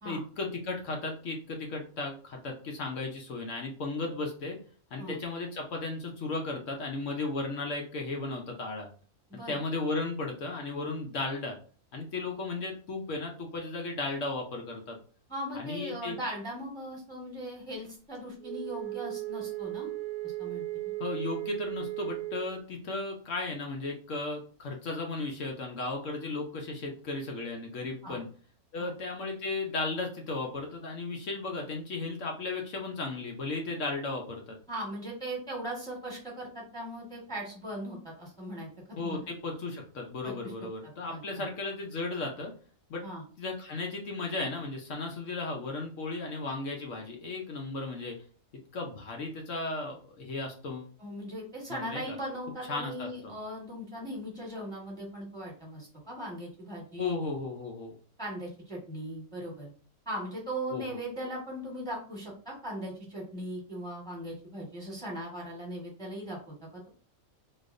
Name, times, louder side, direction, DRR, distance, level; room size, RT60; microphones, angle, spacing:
voice 1, 0.0-4.6 4.9-8.9 9.3-11.6 11.9-15.0 15.5-16.2 21.0-28.3 28.7-34.6 39.0-42.5 42.9-43.0 43.4-48.2 48.7-50.9 51.7-52.2 52.7-53.1 57.0-57.9 60.7-61.0, left 3 dB, 70° left, 1 dB, 1.1 m, -35 dB
voice 2, 15.3-19.9 20.2-20.9 28.0-28.2 28.8-28.9 34.7-38.7 39.0-39.3 40.2-40.5 41.1-41.4 43.0-43.2 51.0-57.2 58.2-59.7 60.0-66.9, right 1 dB, 5° left, -4 dB, 1.3 m, -39 dB
Wind instrument woodwind instrument, 18.4-22.6, right 18 dB, 85° right, 1.0 m, -36 dB
4.0 x 2.9 x 2.5 m, 0.41 s
omnidirectional pair, 1.4 m